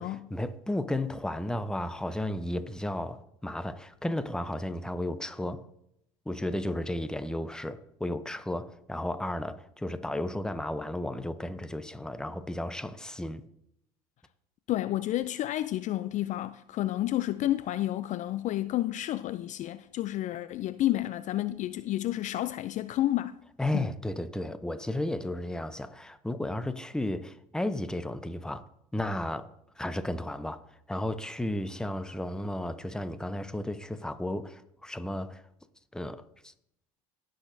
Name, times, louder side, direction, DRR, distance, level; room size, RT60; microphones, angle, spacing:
voice 1, 0.3-5.6 6.3-13.4 23.6-28.6 28.9-29.5 29.8-30.6 30.9-35.4 35.9-36.5, left 1 dB, 5° left, 0.7 m, -33 dB
voice 2, 14.7-23.4 23.7-23.9, left 14 dB, 45° left, 0.4 m, -30 dB
17.0 x 6.4 x 2.7 m
hypercardioid pair, 75°, 17 cm